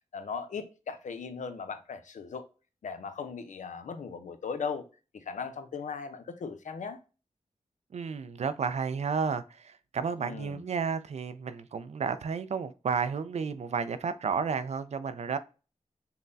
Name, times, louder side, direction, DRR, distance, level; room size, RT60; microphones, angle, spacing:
voice 1, 0.1-2.4 2.8-4.8 5.1-7.0 10.2-10.6, left 5 dB, 80° left, 0.5 m, -38 dB
voice 2, 7.9-15.4, right 5 dB, 60° right, 0.4 m, -32 dB
5.4 x 2.1 x 2.5 m
cardioid pair, 65°, 13 cm